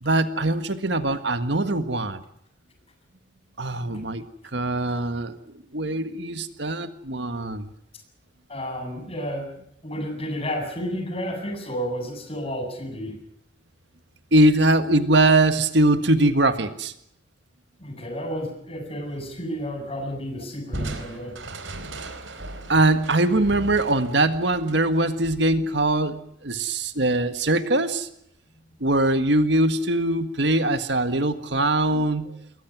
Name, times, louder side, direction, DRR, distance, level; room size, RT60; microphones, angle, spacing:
voice 1, 0.0-2.2 3.6-4.2 4.5-5.3 5.7-7.7 14.3-16.9 22.7-28.1 28.8-32.3, right 2 dB, 65° right, 9 dB, 1.7 m, -22 dB
voice 2, 8.5-9.5 9.8-13.2 17.8-21.4 31.3-31.5 31.9-32.3, equal, 30° left, 5 dB, 7.9 m, -32 dB
Crushing, 20.7-26.1, right 2 dB, 85° right, 4.3 m, -37 dB
28.5 x 22.0 x 6.1 m, 0.74 s
head